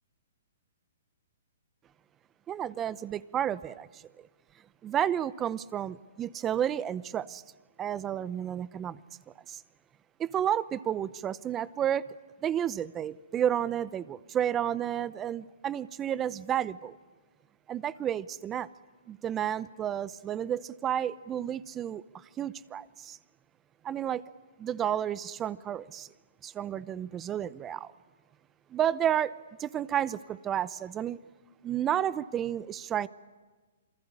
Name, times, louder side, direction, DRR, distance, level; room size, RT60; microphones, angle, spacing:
voice 1, 2.5-4.0 4.8-7.4 7.8-9.0 9.5-9.6 10.2-12.0 12.4-17.0 17.7-18.7 19.1-22.0 22.4-23.2 23.8-24.2 24.6-26.1 26.4-27.9 28.7-29.3 29.6-31.2 31.6-33.1, right 10 dB, 20° right, 0.8 m, -31 dB
27.5 x 21.5 x 9.7 m
hypercardioid pair, 140°, 0 cm